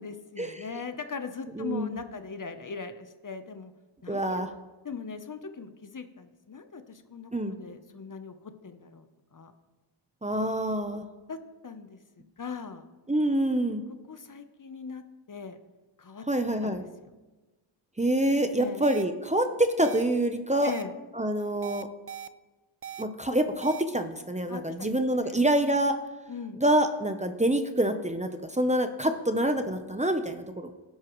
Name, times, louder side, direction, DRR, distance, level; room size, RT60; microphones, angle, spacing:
voice 1, 0.0-3.7 4.0-4.4 4.8-9.5 11.3-12.0 12.4-12.9 14.1-15.6 16.0-16.3 16.6-17.1 18.5-18.8 20.6-20.9 24.5-25.5 26.3-26.6, left 5 dB, 40° left, 9 dB, 0.8 m, -40 dB
voice 2, 1.6-2.0 4.1-4.5 7.3-7.6 10.2-11.0 13.1-13.8 16.3-16.8 18.0-20.7 21.2-21.9 23.0-26.0 26.6-30.7, right 1 dB, 15° right, 7 dB, 0.7 m, -26 dB
sound 1, 18.8-19.0 19.8-20.0 20.6-20.8 21.6-22.3 22.8-23.0 23.6-23.8, right 9 dB, 30° right, 0.3 m, -39 dB
18.5 x 11.0 x 3.1 m, 1.2 s
wide cardioid pair, 125°, 49 cm